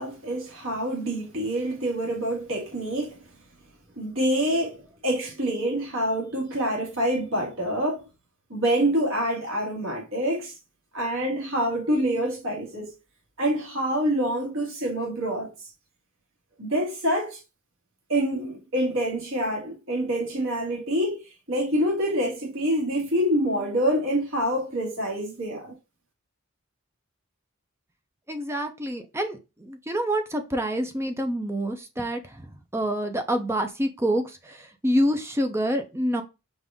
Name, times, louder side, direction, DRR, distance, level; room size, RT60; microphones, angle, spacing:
voice 1, 0.0-3.2 4.0-8.1 8.5-10.6 10.9-12.9 13.4-15.7 16.6-17.4 18.1-21.2 21.5-25.8, equal, 65° right, 2.1 m, -26 dB
voice 2, 28.3-32.5 32.7-36.2, equal, 10° right, 0.6 m, -27 dB
5.3 x 2.6 x 3.5 m
head